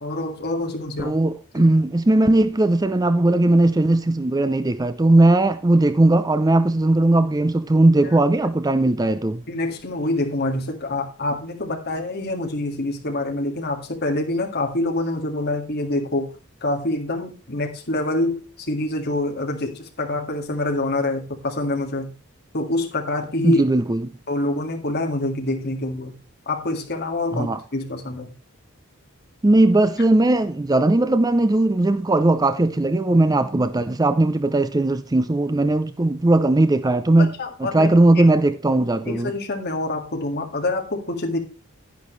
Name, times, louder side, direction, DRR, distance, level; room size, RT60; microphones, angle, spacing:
voice 1, 0.0-1.1 1.6-1.7 8.0-8.2 9.5-16.3 16.6-22.1 22.5-23.6 24.3-26.1 26.5-28.3 37.2-37.9 38.2-38.3 39.0-41.4, left 2 dB, 50° left, 1.9 m, -26 dB
voice 2, 1.0-9.4 23.4-24.0 27.3-27.6 29.4-37.3 37.6-39.3, right 2 dB, 15° right, 0.4 m, -18 dB
10.5 x 10.0 x 3.2 m
head